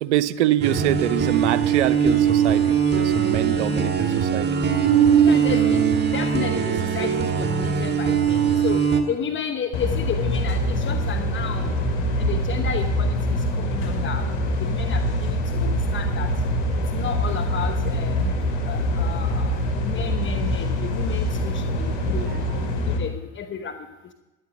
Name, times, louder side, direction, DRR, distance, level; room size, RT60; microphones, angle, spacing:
voice 1, 0.0-4.7 22.3-22.7, right 13 dB, 80° right, 17 dB, 0.6 m, -25 dB
sound 1, 0.6-9.0, right 7 dB, 30° right, 1.9 m, -20 dB
voice 2, 5.2-5.9 6.1-11.7 12.2-14.3 14.6-16.3 16.9-18.2 18.7-22.3 22.6-22.7 23.0-23.8, left 7 dB, 35° left, 6 dB, 1.1 m, -32 dB
sound 2, 9.7-23.0, left 1 dB, 80° left, 2.6 m, -24 dB
14.0 x 11.0 x 5.3 m, 1.0 s
hypercardioid pair, 70°, 34 cm